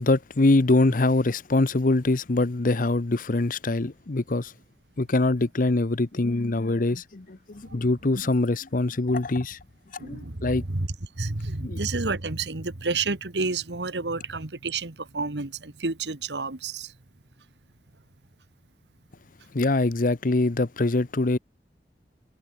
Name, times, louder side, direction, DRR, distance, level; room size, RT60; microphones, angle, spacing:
voice 1, 0.0-4.5 5.0-9.6 10.0-10.6 11.6-11.8 19.5-21.4, left 2 dB, 50° left, 0.8 m, -23 dB
voice 2, 10.0-10.9 11.2-16.9, right 3 dB, 80° right, 1.7 m, -30 dB
head